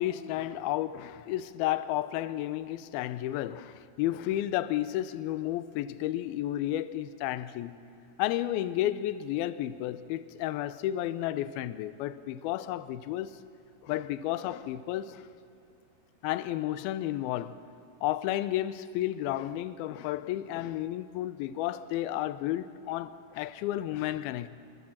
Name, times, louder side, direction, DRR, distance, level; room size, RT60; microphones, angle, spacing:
voice 1, 0.0-7.8 8.2-13.3 13.8-15.2 16.2-17.6 18.0-24.5, left 13 dB, 80° left, 2.4 m, -32 dB
25.0 x 21.0 x 7.3 m
omnidirectional pair, 4.6 m